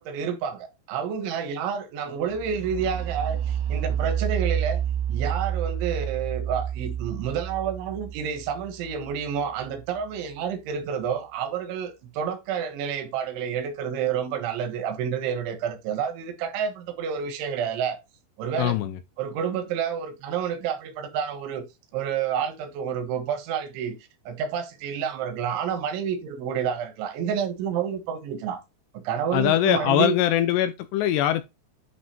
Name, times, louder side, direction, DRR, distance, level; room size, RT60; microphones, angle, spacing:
voice 1, 0.0-4.8 5.1-18.0 18.4-18.8 19.2-21.7 21.9-24.0 24.3-28.6 28.9-30.2, right 7 dB, 85° right, 3.8 m, -29 dB
sound 1, 2.3-10.0, right 9 dB, 65° right, 3.1 m, -29 dB
voice 2, 18.6-19.0 29.3-31.4, left 12 dB, 80° left, 2.5 m, -22 dB
10.5 x 5.5 x 2.9 m
omnidirectional pair, 5.3 m